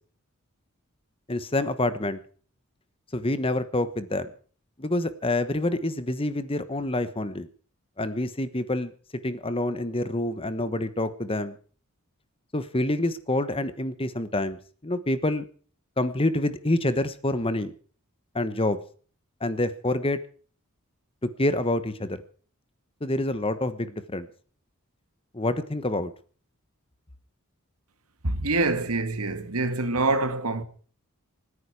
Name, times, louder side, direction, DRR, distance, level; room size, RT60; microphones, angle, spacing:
voice 1, 1.3-2.2 3.1-4.3 4.8-7.5 8.0-8.9 9.2-11.6 12.5-15.5 16.0-17.7 18.3-18.8 19.4-20.2 21.2-22.2 23.0-24.3 25.3-26.1, left 1 dB, 25° left, 1.2 m, -27 dB
voice 2, 28.2-30.6, right 2 dB, 80° right, 1.9 m, -25 dB
27.0 x 10.0 x 4.8 m
head